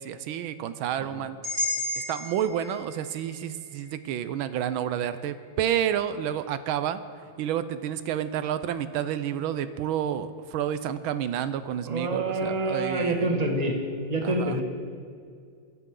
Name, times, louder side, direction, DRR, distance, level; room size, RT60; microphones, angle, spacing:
voice 1, 0.0-1.4 2.1-13.3 14.2-14.6, right 10 dB, 85° right, 12 dB, 1.5 m, -30 dB
sound 1, 1.4-5.5, left 2 dB, 65° right, 3.6 m, -35 dB
voice 2, 11.8-13.8 14.1-14.6, right 2 dB, 20° right, 1 dB, 1.7 m, -27 dB
25.0 x 12.0 x 3.8 m, 2.3 s
omnidirectional pair, 2.2 m